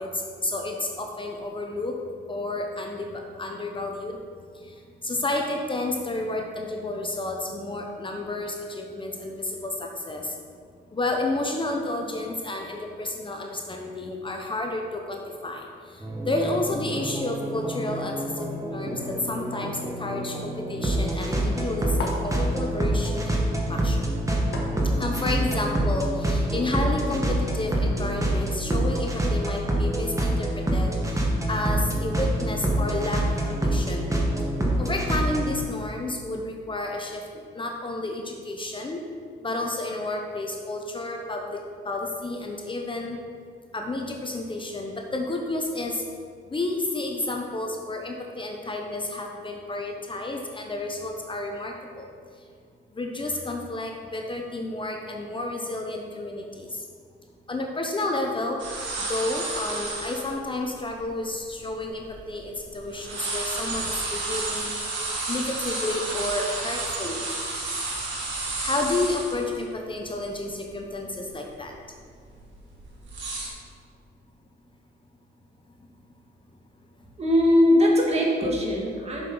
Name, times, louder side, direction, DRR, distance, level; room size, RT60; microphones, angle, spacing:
voice 1, 0.0-2.0 2.3-4.2 4.5-10.4 10.9-24.1 24.8-34.1 34.8-39.0 39.4-43.2 43.7-46.0 46.5-52.1 52.9-56.9 57.5-58.6 59.0-64.7 65.0-67.3 68.6-71.7, left 2 dB, 25° left, 1 dB, 0.8 m, -31 dB
sound 1, 16.0-35.6, right 1 dB, 15° right, 1.3 m, -26 dB
sound 2, 19.5-19.9 22.0-22.4 24.5-25.1, left 3 dB, 70° left, 1.3 m, -35 dB
sound 3, 58.6-60.3 60.9-61.0 61.6-62.6 62.9-69.6 70.0-70.1 70.5-70.8 71.2-71.5 72.2-73.5, right 3 dB, 65° right, 1.9 m, -31 dB
voice 2, 77.2-79.3, left 1 dB, 30° right, -2 dB, 1.8 m, -20 dB
7.4 x 6.5 x 3.9 m, 2.1 s
cardioid pair, 90°, 20 cm